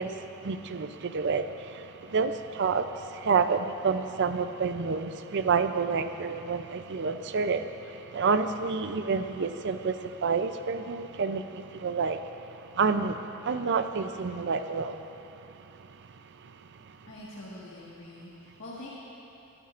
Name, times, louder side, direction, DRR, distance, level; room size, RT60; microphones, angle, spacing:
voice 1, 0.0-12.2 12.8-13.2 13.4-15.0, right 5 dB, 55° right, 9 dB, 0.5 m, -29 dB
voice 2, 17.0-18.9, left 1 dB, 60° left, -7 dB, 1.8 m, -44 dB
21.5 x 12.5 x 2.6 m, 2.9 s
head